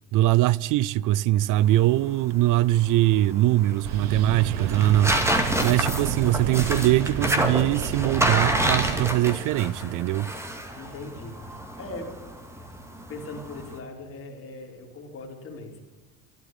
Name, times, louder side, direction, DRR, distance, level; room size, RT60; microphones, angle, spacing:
voice 1, 0.1-5.2 5.6-10.3, right 15 dB, 60° right, 0.5 m, -22 dB
sound 1, 1.6-13.8, equal, 5° right, 2.1 m, -29 dB
sound 2, 3.8-9.1, right 7 dB, 90° right, 1.4 m, -30 dB
voice 2, 10.8-12.1 13.1-15.8, left 2 dB, 40° left, 3.6 m, -40 dB
13.0 x 11.0 x 9.1 m
cardioid pair, 105°, 36 cm